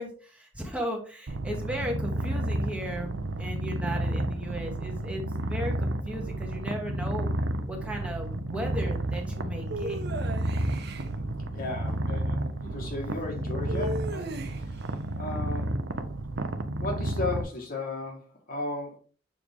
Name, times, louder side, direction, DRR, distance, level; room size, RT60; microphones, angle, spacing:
voice 1, 0.0-3.1 3.4-7.3 7.7-10.1, equal, 5° right, 1.3 m, -36 dB
Purr, 1.3-17.4, right 1 dB, 85° right, 0.7 m, -31 dB
sound 1, 9.7-11.1 13.7-14.8, right 1 dB, 60° right, 1.0 m, -36 dB
voice 2, 11.5-14.3 15.2-15.8 16.8-19.0, left 2 dB, 50° left, 1.7 m, -35 dB
6.7 x 4.9 x 3.6 m
head